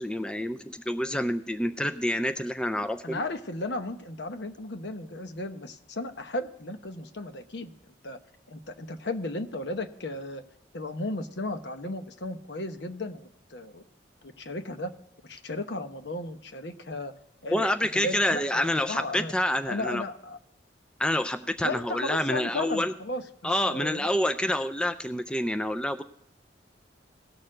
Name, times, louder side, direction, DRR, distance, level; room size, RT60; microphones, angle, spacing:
voice 1, 0.0-3.2 17.5-20.0 21.0-22.9 23.4-26.0, left 1 dB, 5° left, 9 dB, 0.3 m, -27 dB
voice 2, 3.0-7.7 8.0-8.2 8.5-10.4 10.7-13.8 14.2-14.9 15.2-17.1 17.4-19.3 19.7-20.4 21.6-24.1, left 2 dB, 65° left, 8 dB, 0.9 m, -35 dB
18.0 x 6.6 x 3.8 m, 0.79 s
head